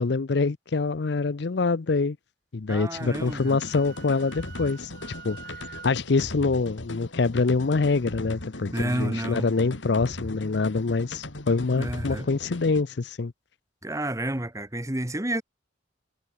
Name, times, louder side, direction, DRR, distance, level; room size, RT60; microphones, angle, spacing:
voice 1, 0.0-2.2 2.5-4.9 5.2-5.4 5.7-13.3, left 4 dB, 65° left, 0.6 m, -25 dB
voice 2, 2.7-3.6 8.7-9.5 11.8-12.3 13.8-15.4, right 1 dB, 15° right, 1.8 m, -30 dB
sound 1, 3.0-12.8, left 1 dB, 85° left, 3.0 m, -38 dB
Wind instrument woodwind instrument, 3.0-5.9, right 6 dB, 55° right, 4.1 m, -46 dB
head